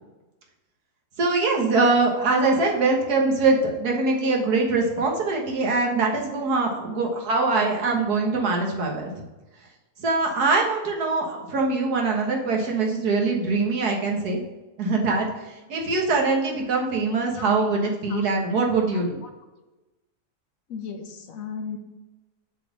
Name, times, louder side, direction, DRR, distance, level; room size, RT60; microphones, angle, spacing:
voice 1, 1.2-9.1 10.0-14.4 14.8-19.2, right 3 dB, 75° right, 0 dB, 1.9 m, -23 dB
voice 2, 17.8-18.2 18.9-19.0 20.7-21.8, left 6 dB, 60° left, 5 dB, 1.2 m, -36 dB
6.7 x 4.2 x 6.0 m, 1.1 s
omnidirectional pair, 1.7 m